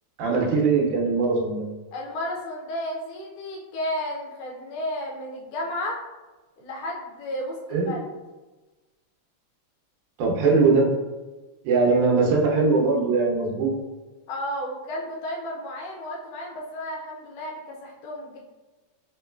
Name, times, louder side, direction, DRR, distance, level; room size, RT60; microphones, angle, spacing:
voice 1, 0.2-1.7 7.7-7.9 10.2-10.9 11.6-13.7, right 4 dB, 85° right, -1 dB, 2.2 m, -21 dB
voice 2, 1.9-6.0 6.6-8.0 14.3-18.4, left 1 dB, 80° left, -2 dB, 1.4 m, -33 dB
5.1 x 3.0 x 2.2 m, 1.2 s
omnidirectional pair, 3.4 m